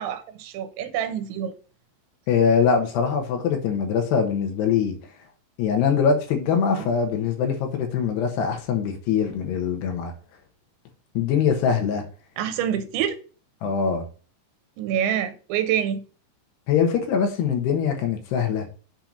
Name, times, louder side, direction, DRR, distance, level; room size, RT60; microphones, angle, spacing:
voice 1, 0.0-1.5 12.4-13.2 14.8-16.0, right 9 dB, 90° right, 3.3 m, -26 dB
voice 2, 2.3-4.9 5.6-10.1 11.1-12.0 13.6-14.1 16.7-18.7, left 6 dB, 70° left, 3.2 m, -23 dB
7.8 x 4.5 x 5.2 m
omnidirectional pair, 5.2 m